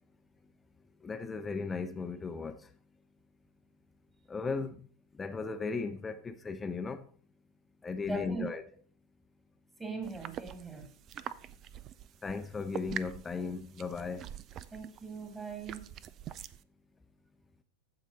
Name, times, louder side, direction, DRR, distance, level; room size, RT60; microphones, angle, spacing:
voice 1, 1.0-2.6 4.3-4.8 5.2-7.0 7.8-8.6 12.2-14.2, left 4 dB, 15° left, 0.8 m, -36 dB
voice 2, 8.0-8.5 9.8-10.9 14.7-16.0, right 3 dB, 10° right, 2.4 m, -40 dB
sound 1, 10.0-16.6, right 10 dB, 35° right, 0.5 m, -45 dB
15.0 x 5.0 x 4.0 m
figure-of-eight pair, 90°, 0 cm